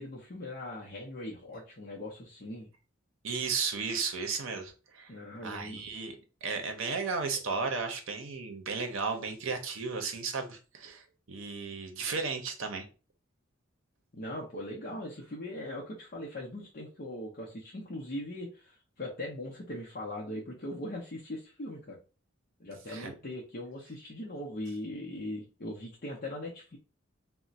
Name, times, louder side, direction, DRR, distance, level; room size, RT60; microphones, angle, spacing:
voice 1, 0.0-2.7 5.1-5.8 14.1-22.0 22.6-26.8, left 1 dB, 45° left, -4 dB, 0.6 m, -40 dB
voice 2, 3.2-5.1 5.4-12.9 22.9-23.1, right 4 dB, 90° right, 5 dB, 0.6 m, -34 dB
2.4 x 2.1 x 3.9 m, 0.34 s
head